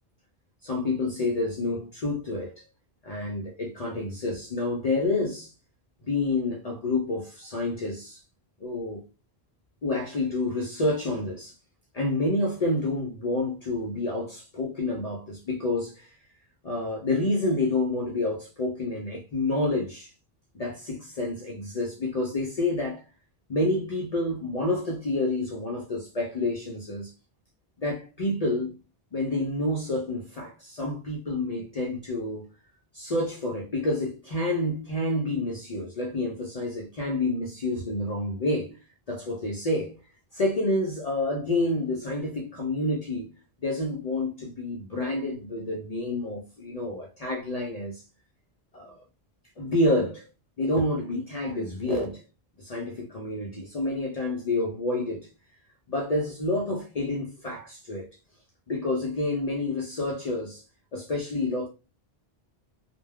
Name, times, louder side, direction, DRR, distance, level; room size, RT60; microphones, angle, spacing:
voice 1, 0.6-2.6 3.0-5.5 6.0-8.2 8.6-9.0 9.8-11.5 11.9-16.1 16.6-20.1 20.5-23.0 23.5-27.1 27.8-28.7 29.1-32.5 32.9-38.8 39.1-40.0 40.3-43.3 43.6-48.0 48.7-49.0 49.6-50.3 50.6-52.2 52.6-55.3 55.9-58.1 58.7-60.6 60.9-61.7, left 2 dB, 50° left, 0.5 m, -28 dB
2.2 x 2.1 x 3.4 m
omnidirectional pair, 1.0 m